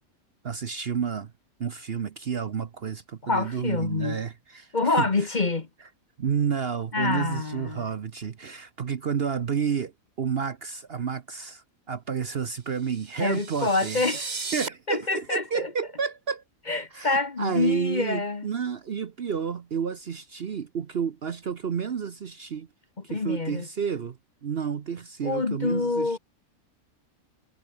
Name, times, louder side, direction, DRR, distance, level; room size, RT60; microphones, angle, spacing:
voice 1, 0.4-1.3 1.6-5.3 6.2-9.9 10.2-14.1 14.5-16.4 16.9-22.7 23.0-26.2, right 7 dB, 50° right, 1.0 m, -30 dB
voice 2, 3.2-4.2 4.7-5.7 6.9-7.8 13.2-14.3 14.9-15.7 16.7-18.5 23.1-23.7 25.2-26.2, left 3 dB, 35° left, 1.3 m, -26 dB
sound 1, 12.8-14.7, right 4 dB, 30° right, 1.4 m, -35 dB
omnidirectional pair, 1.5 m